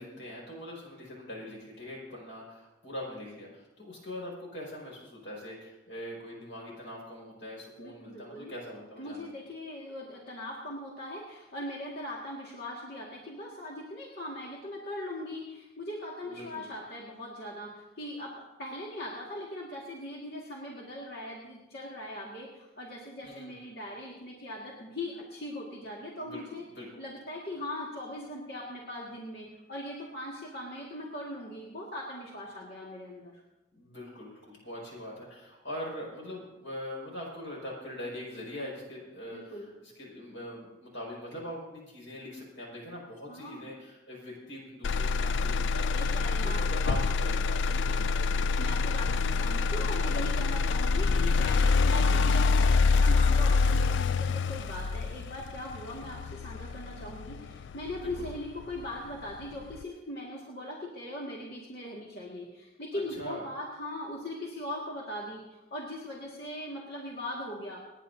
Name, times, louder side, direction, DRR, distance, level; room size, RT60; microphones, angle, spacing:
voice 1, 0.0-9.3 16.2-16.6 23.2-23.7 26.2-26.4 26.7-26.9 33.7-39.5 39.8-48.1 58.0-58.3 62.9-63.4, left 1 dB, 90° left, -3 dB, 5.9 m, -42 dB
voice 2, 7.8-8.5 9.0-26.6 27.0-33.3 39.3-39.7 43.3-43.7 45.9-46.6 47.7-48.0 48.6-65.4 65.7-67.8, left 1 dB, 60° left, -3 dB, 2.0 m, -40 dB
Motor vehicle (road), 44.8-58.8 59.3-59.8, left 4 dB, 75° left, 0.3 m, -26 dB
27.5 x 10.0 x 2.8 m, 1.0 s
head